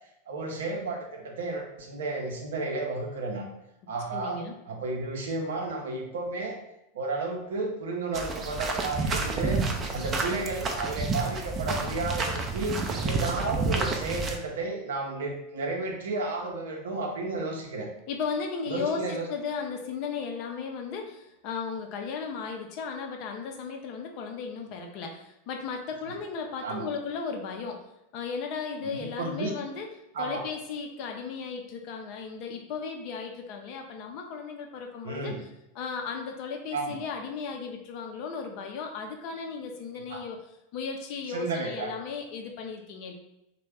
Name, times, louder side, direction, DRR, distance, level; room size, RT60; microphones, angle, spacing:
voice 1, 0.3-3.5 3.9-4.4 4.7-6.6 6.9-9.6 9.9-12.8 13.0-17.9 18.7-19.3 26.6-26.9 28.8-29.5 30.1-30.4 35.0-35.4 36.7-37.0 40.1-40.2 41.3-41.9, right 3 dB, 70° right, 1 dB, 0.6 m, -32 dB
voice 2, 4.1-4.5 18.1-27.8 28.1-29.9 30.2-35.5 35.7-40.4 40.7-43.1, left 5 dB, 50° left, 3 dB, 0.5 m, -35 dB
sound 1, 8.1-14.4, right 3 dB, 30° right, 0.5 m, -30 dB
3.1 x 2.2 x 3.3 m, 0.86 s
figure-of-eight pair, 90°, 0 cm